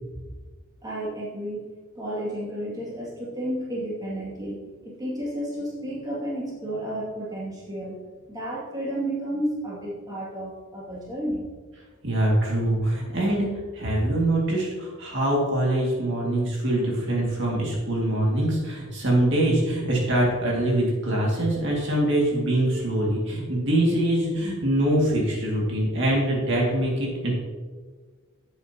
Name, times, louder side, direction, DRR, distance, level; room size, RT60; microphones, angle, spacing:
voice 1, 0.8-1.7 2.0-8.0 8.3-11.5, right 1 dB, 20° right, -7 dB, 2.2 m, -32 dB
voice 2, 12.0-13.5 13.7-27.3, right 1 dB, 55° right, -3 dB, 2.2 m, -24 dB
11.0 x 8.0 x 2.9 m, 1.4 s
head